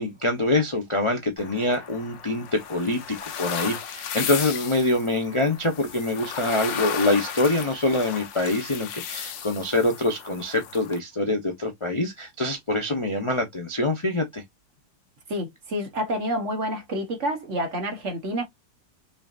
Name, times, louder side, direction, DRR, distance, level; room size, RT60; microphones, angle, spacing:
voice 1, 0.0-14.4, left 2 dB, 45° left, 0.3 m, -25 dB
sound 1, 1.4-11.0, left 8 dB, 80° left, 1.5 m, -35 dB
voice 2, 15.3-18.4, equal, 45° right, 1.2 m, -28 dB
5.6 x 2.7 x 2.4 m
omnidirectional pair, 2.0 m